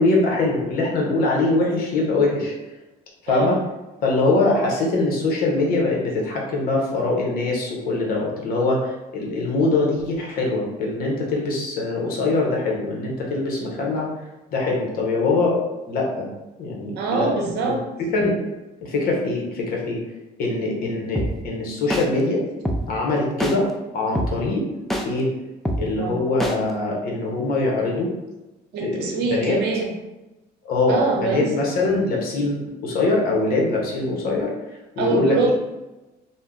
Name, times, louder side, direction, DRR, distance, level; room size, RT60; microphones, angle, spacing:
voice 1, 0.0-2.5 3.2-3.6 4.0-14.1 14.5-15.6 15.9-16.3 16.6-17.3 17.6-17.8 18.1-18.4 18.8-20.0 20.4-22.4 22.9-23.7 23.9-24.7 25.0-25.3 25.8-28.1 28.8-29.5 30.6-34.5 35.0-35.5, left 2 dB, 60° left, -2 dB, 0.9 m, -23 dB
voice 2, 3.3-3.6 17.0-17.8 26.0-26.2 28.7-30.0 30.9-31.5 35.0-35.5, right 3 dB, 80° right, 0 dB, 0.7 m, -24 dB
sound 1, 21.2-21.3 21.9-22.0 22.7-22.8 23.4-23.5 24.2-24.3 24.9-25.0 25.7-25.8 26.4-26.5, equal, ahead, 0.3 m, -23 dB
2.7 x 2.1 x 3.6 m, 1.0 s
cardioid pair, 110°, 17 cm